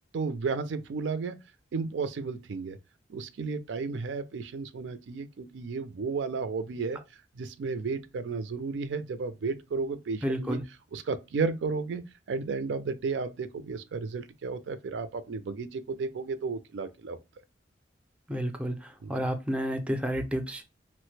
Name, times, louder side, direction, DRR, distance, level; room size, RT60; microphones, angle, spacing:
voice 1, 0.1-1.4 1.7-2.8 3.1-7.0 7.4-10.6 10.9-12.0 12.3-17.2 19.0-19.1, right 4 dB, 90° right, 0.4 m, -33 dB
voice 2, 10.2-10.6 18.3-20.6, equal, 5° right, 0.4 m, -31 dB
3.0 x 2.1 x 3.1 m
head